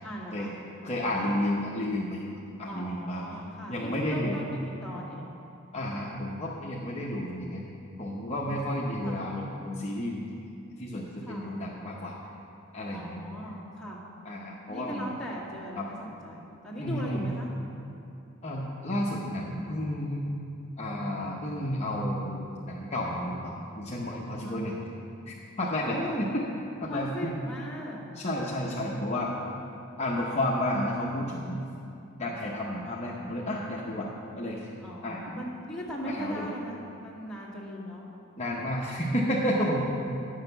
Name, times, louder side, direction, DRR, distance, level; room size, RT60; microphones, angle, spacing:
voice 1, 0.0-1.2 2.7-5.3 8.4-8.6 9.0-9.2 11.2-11.6 12.9-14.0 14.7-17.5 24.4-24.9 25.8-26.3 26.9-28.1 34.8-38.1, equal, 5° left, -9 dB, 2.0 m, -39 dB
voice 2, 0.8-2.3 2.6-3.2 3.7-4.4 5.7-7.6 8.0-10.2 10.8-12.1 12.7-13.2 14.2-15.1 15.8-15.9 16.8-17.3 18.4-20.2 20.8-24.7 25.3-26.5 26.8-27.3 28.2-29.3 30.0-31.6 32.2-34.1 34.4-34.7 35.0-35.2 36.1-36.5 38.4-39.8, left 1 dB, 30° left, -4 dB, 0.8 m, -31 dB
9.8 x 6.5 x 6.6 m, 2.7 s
head